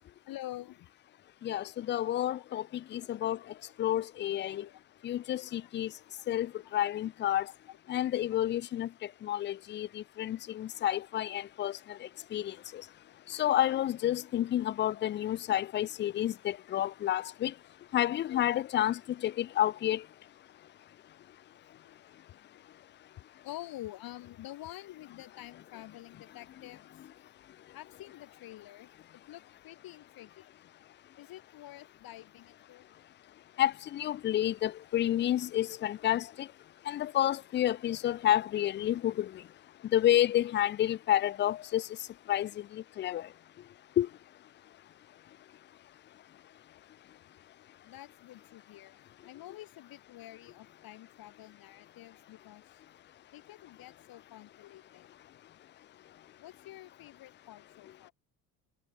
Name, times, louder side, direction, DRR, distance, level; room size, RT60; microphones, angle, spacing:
voice 1, 0.3-0.9 2.3-2.6 4.5-4.8 5.2-5.7 6.6-6.7 7.7-7.8 8.3-8.4 13.1-13.2 17.0-17.2 18.3-18.4 18.8-18.9 21.8-21.9 22.3-22.6 23.4-27.0 27.7-30.5 31.2-32.9 47.8-52.8 53.3-55.1 56.4-58.1, left 15 dB, 60° left, 4.5 m, -48 dB
voice 2, 1.4-2.6 2.9-3.4 3.8-4.7 5.0-5.9 6.3-7.5 7.9-8.9 9.2-11.7 12.3-12.5 13.3-17.5 17.9-20.0 33.6-36.5 36.9-39.3 39.9-41.8 42.3-42.5 43.0-43.2 44.0-44.1, left 12 dB, 30° left, 0.4 m, -29 dB
cardioid pair, 145°, 40 cm